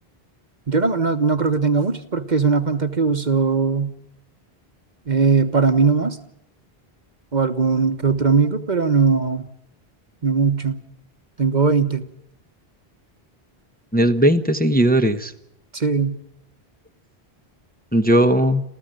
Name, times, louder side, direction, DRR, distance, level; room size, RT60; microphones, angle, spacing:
voice 1, 0.7-3.9 5.1-6.2 7.3-9.5 10.2-10.8 11.4-12.0 15.7-16.2, right 5 dB, 45° right, 9 dB, 1.3 m, -19 dB
voice 2, 13.9-15.3 17.9-18.6, right 1 dB, 10° left, 7 dB, 1.0 m, -17 dB
27.5 x 15.0 x 9.0 m, 0.78 s
omnidirectional pair, 1.0 m